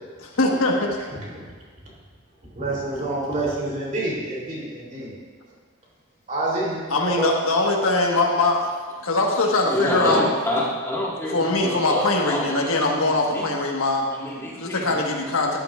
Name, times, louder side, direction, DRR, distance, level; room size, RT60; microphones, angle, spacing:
voice 1, 0.2-0.9 6.9-8.7 9.0-10.2 11.3-14.1 14.6-15.6, left 2 dB, 90° left, 1 dB, 1.4 m, -22 dB
voice 2, 1.1-1.4 2.5-5.1 6.3-7.3, right 2 dB, 40° right, -5 dB, 3.1 m, -27 dB
voice 3, 9.6-13.5 14.1-15.0, left 1 dB, 15° left, -5 dB, 1.7 m, -28 dB
13.0 x 11.0 x 2.4 m, 1.5 s
head